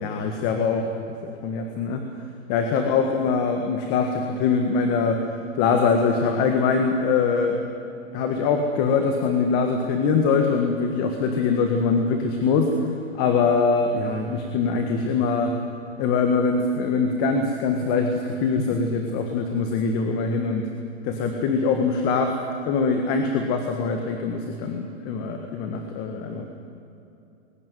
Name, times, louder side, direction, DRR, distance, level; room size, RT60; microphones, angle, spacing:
voice 1, 0.0-0.9 1.2-2.0 2.5-5.3 5.5-7.6 8.1-12.7 13.1-15.5 16.0-20.7 21.0-22.4 22.6-26.4, left 4 dB, 25° left, 4 dB, 1.6 m, -23 dB
21.5 x 18.0 x 9.5 m, 2.7 s
hypercardioid pair, 160°, 37 cm